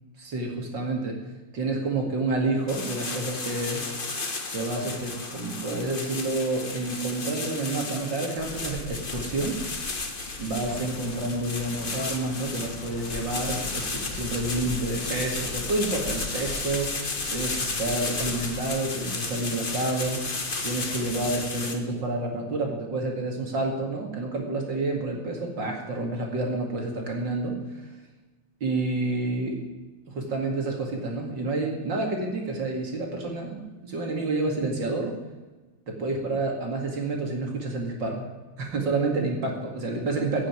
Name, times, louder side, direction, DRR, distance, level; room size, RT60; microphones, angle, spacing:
voice 1, 0.2-1.2 1.5-3.8 4.5-9.6 10.4-27.6 28.6-29.6 30.1-35.2 35.9-38.3 38.6-40.5, right 2 dB, 70° right, 1 dB, 3.0 m, -29 dB
sound 1, 2.7-21.7, left 3 dB, 30° left, 1.6 m, -33 dB
sound 2, 8.4-18.6, left 4 dB, 70° left, 2.0 m, -41 dB
16.5 x 7.0 x 9.7 m, 1.2 s
omnidirectional pair, 2.1 m